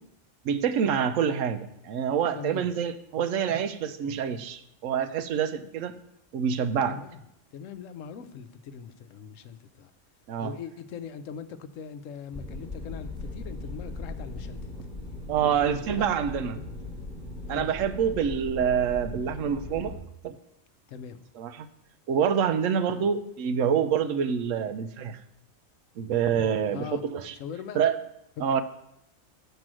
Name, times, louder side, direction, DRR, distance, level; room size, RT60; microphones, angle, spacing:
voice 1, 0.4-5.9 6.3-7.0 10.3-10.5 15.3-16.6 17.5-19.9 20.2-20.4 21.4-21.7 22.1-25.2 26.0-27.3 27.7-28.0 28.4-28.6, right 7 dB, 80° right, 11 dB, 1.0 m, -26 dB
voice 2, 2.3-2.7 6.9-7.2 7.5-9.9 10.4-14.7 15.3-16.1 16.4-16.7 17.5-17.7 20.9-21.3 22.9-23.1 24.6-24.7 26.7-27.0 27.3-27.8 28.4-28.5, left 7 dB, 75° left, 11 dB, 1.0 m, -41 dB
sound 1, 12.3-20.0, left 2 dB, 5° right, 1.2 m, -39 dB
7.5 x 5.2 x 6.2 m, 0.81 s
omnidirectional pair, 1.4 m